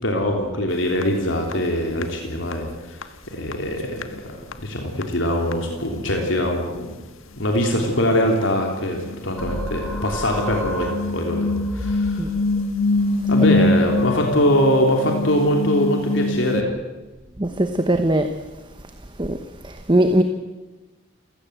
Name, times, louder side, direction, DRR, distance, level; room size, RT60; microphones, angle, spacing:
voice 1, 0.0-6.9 7.4-11.5 11.7-12.3 13.3-16.7, equal, 65° left, 3.3 m, -22 dB
sound 1, 1.0-1.1 1.5-1.6 2.0-2.1 2.5-2.6 3.0-3.1 3.5-3.6 3.9-4.2 4.5-4.6 5.0-5.1 5.5-5.6 5.8-5.9 7.9-8.0 8.4-16.6, left 2 dB, 90° left, 1.6 m, -24 dB
sound 2, 9.4-14.6, equal, 5° left, 4.5 m, -34 dB
voice 2, 17.4-18.3 19.2-20.2, right 1 dB, 25° right, 1.1 m, -20 dB
29.5 x 16.5 x 8.1 m
head